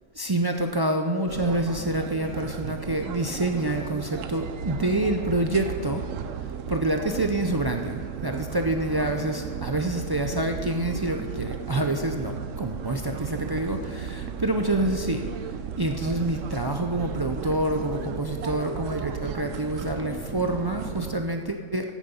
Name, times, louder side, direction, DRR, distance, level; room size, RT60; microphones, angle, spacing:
voice 1, 0.1-6.0 6.7-15.2 15.8-21.9, right 1 dB, 40° right, 4 dB, 0.3 m, -27 dB
sound 1, 1.3-21.2, right 8 dB, 90° right, 1.0 m, -35 dB
16.0 x 7.3 x 5.5 m, 2.1 s
omnidirectional pair, 1.3 m